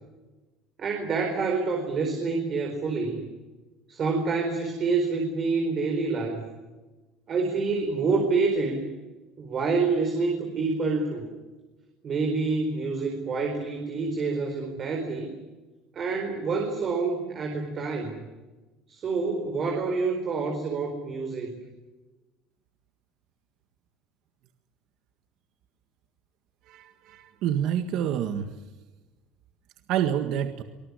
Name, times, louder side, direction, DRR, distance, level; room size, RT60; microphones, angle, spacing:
voice 1, 0.8-3.2 3.9-6.5 7.3-8.8 9.4-11.3 12.0-15.3 15.9-18.2 18.9-21.6, right 4 dB, 30° right, 4 dB, 4.4 m, -27 dB
voice 2, 26.7-28.5 29.9-30.6, right 10 dB, 55° right, 8 dB, 1.7 m, -27 dB
24.5 x 20.5 x 9.8 m, 1.2 s
cardioid pair, 160°, 0 cm